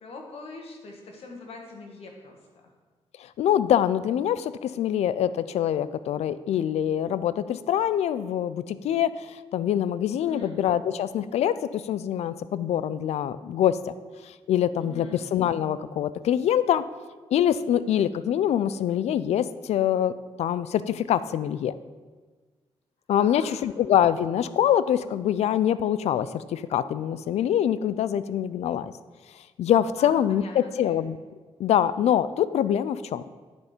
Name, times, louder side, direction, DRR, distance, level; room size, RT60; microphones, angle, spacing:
voice 1, 0.0-2.7 10.2-10.5 14.8-15.2 23.2-23.6 30.0-30.9, left 3 dB, 65° left, 1 dB, 1.5 m, -43 dB
voice 2, 3.4-13.8 14.5-16.8 17.3-21.7 23.1-28.9 29.6-31.2 31.6-33.2, left 10 dB, 85° left, 15 dB, 0.4 m, -24 dB
9.6 x 4.4 x 5.0 m, 1.3 s
wide cardioid pair, 130°, 11 cm